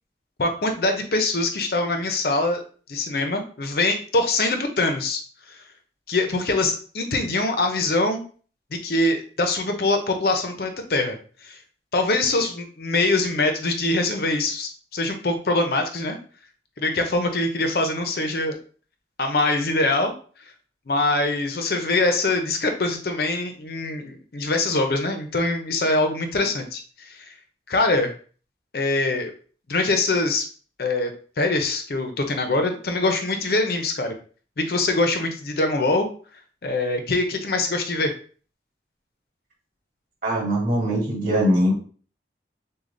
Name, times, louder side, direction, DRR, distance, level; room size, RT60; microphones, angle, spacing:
voice 1, 0.4-2.6 2.9-5.2 5.5-5.6 6.1-8.2 8.7-11.2 11.4-11.6 11.9-16.2 16.8-18.6 19.2-20.1 20.9-27.3 27.7-28.1 28.7-29.3 29.7-30.5 30.8-34.1 34.6-36.1 36.6-38.1, left 2 dB, 55° left, 5 dB, 0.6 m, -23 dB
voice 2, 40.2-41.7, equal, 50° right, -5 dB, 2.1 m, -21 dB
6.4 x 2.3 x 2.6 m, 0.41 s
head